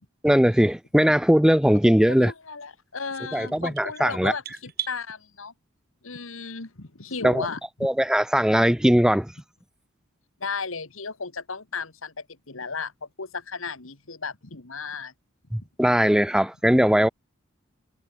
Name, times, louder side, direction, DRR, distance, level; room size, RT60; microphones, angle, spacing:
voice 1, 0.2-2.3 3.3-4.3 7.2-7.5 7.8-9.3 15.5-17.1, equal, 5° right, 0.5 m, -20 dB
voice 2, 2.0-5.5 6.0-7.6 10.4-15.1, left 4 dB, 90° left, 2.1 m, -35 dB
sound 1, 3.1-5.0, right 10 dB, 50° right, 7.5 m, -37 dB
head